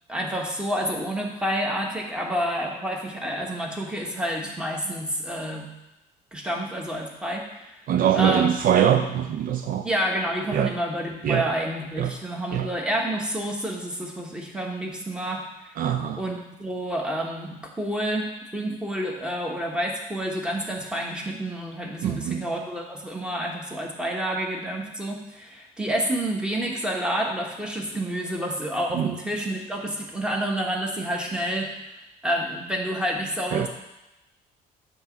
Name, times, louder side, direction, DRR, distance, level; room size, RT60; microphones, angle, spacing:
voice 1, 0.1-5.7 6.3-7.7 8.1-8.5 9.8-15.4 16.2-18.3 18.5-33.7, right 1 dB, 5° right, 0 dB, 1.2 m, -29 dB
voice 2, 7.9-9.9 10.5-10.7 11.2-11.5 12.0-12.1 12.5-12.7 15.8-16.2 22.0-22.4 28.9-29.1 33.5-33.7, right 9 dB, 55° right, 7 dB, 0.4 m, -23 dB
7.7 x 3.0 x 5.9 m, 0.94 s
cardioid pair, 110°, 17 cm